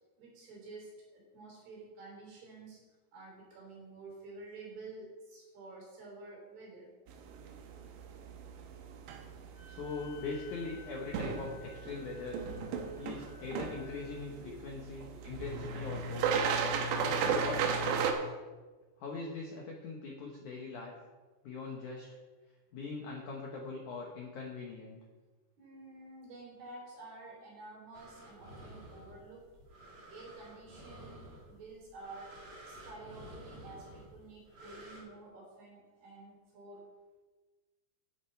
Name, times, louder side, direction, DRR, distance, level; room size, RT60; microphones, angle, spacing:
voice 1, 0.2-2.8 3.1-6.9 14.4-14.8 15.1-15.6 25.6-29.4 30.1-32.3 32.6-36.8, right 2 dB, 60° right, -3 dB, 5.4 m, -50 dB
sound 1, 7.1-18.1, right 6 dB, 80° right, 3.1 m, -36 dB
Wind instrument woodwind instrument, 9.5-14.2, left 6 dB, 25° left, 3.0 m, -56 dB
voice 2, 9.7-12.4 13.0-14.4 14.6-16.3 17.0-18.3 19.0-20.9 21.4-22.1 22.7-25.0, left 3 dB, 70° left, -1 dB, 1.9 m, -41 dB
sound 2, 27.9-35.0, right 1 dB, 40° right, 3.2 m, -52 dB
10.5 x 10.0 x 4.5 m, 1.3 s
omnidirectional pair, 5.2 m